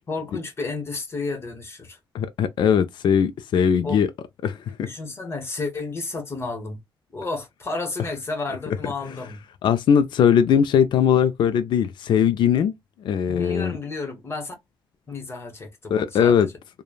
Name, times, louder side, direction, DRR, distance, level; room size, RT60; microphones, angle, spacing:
voice 1, 0.1-2.0 3.8-4.0 4.8-6.8 7.1-9.4 13.3-14.5 15.1-16.5, left 3 dB, 30° left, 1.0 m, -31 dB
voice 2, 2.1-4.1 4.4-4.9 9.6-12.7 13.0-13.8 15.9-16.5, left 8 dB, 65° left, 0.4 m, -20 dB
3.1 x 2.2 x 2.2 m
cardioid pair, 135°, 8 cm